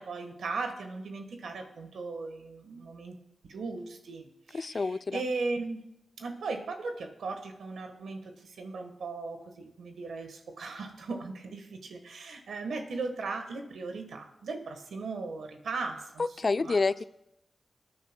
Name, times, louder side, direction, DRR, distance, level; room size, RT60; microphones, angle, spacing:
voice 1, 0.0-3.2 3.5-5.8 6.2-16.3 16.6-16.8, right 3 dB, 90° right, 5 dB, 1.3 m, -37 dB
voice 2, 4.5-5.2 16.2-17.0, left 3 dB, 50° left, 15 dB, 0.3 m, -28 dB
20.0 x 9.3 x 2.2 m, 0.83 s
cardioid pair, 55°, 0 cm